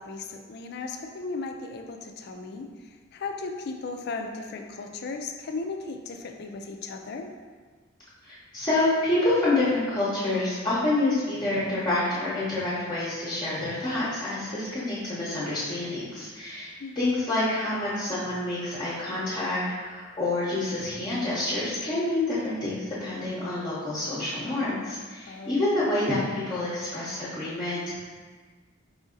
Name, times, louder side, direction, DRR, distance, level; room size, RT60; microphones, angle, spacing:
voice 1, 0.0-7.3 16.8-17.4 25.3-25.6, left 3 dB, 55° left, 4 dB, 0.4 m, -36 dB
voice 2, 8.2-28.0, left 2 dB, 20° left, -10 dB, 0.8 m, -28 dB
4.9 x 2.6 x 3.7 m, 1.5 s
head